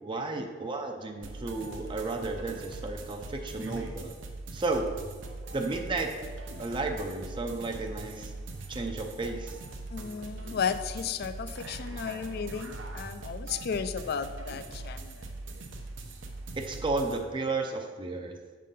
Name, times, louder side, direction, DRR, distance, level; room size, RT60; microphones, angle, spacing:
voice 1, 0.0-4.1 4.5-4.9 5.5-6.1 6.6-8.3 8.7-9.6 16.5-18.4, right 3 dB, 25° right, 3 dB, 0.5 m, -33 dB
sound 1, 1.2-17.2, right 2 dB, 75° right, 0.8 m, -41 dB
voice 2, 9.9-15.3, left 6 dB, 55° left, 12 dB, 0.3 m, -34 dB
6.3 x 3.7 x 5.4 m, 1.5 s
head